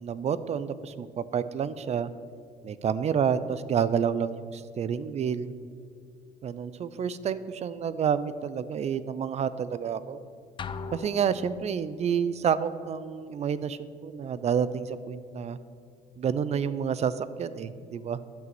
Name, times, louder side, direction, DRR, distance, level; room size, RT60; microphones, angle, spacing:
voice 1, 0.0-2.1 2.6-5.6 6.4-10.2 10.9-15.6 16.2-18.2, right 7 dB, 40° right, 15 dB, 0.5 m, -29 dB
sound 1, 10.6-12.0, left 5 dB, 30° left, 0.4 m, -39 dB
11.5 x 4.9 x 7.6 m, 2.3 s
cardioid pair, 110°, 17 cm